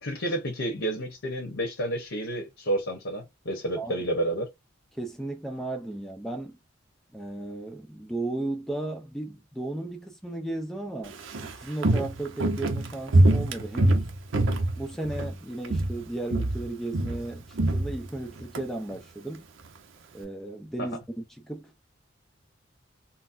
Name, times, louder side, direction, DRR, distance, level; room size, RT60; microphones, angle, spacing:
voice 1, 0.0-4.5 20.8-20.9, right 1 dB, 65° left, 1.0 m, -30 dB
voice 2, 4.9-6.6 7.1-11.2 11.4-14.1 14.8-19.5 20.1-21.7, right 2 dB, ahead, 0.5 m, -35 dB
Walk footsteps, 11.1-15.4 15.6-16.0 16.3-18.6 18.9-19.0, right 1 dB, 80° right, 0.7 m, -24 dB
4.0 x 2.1 x 2.6 m
head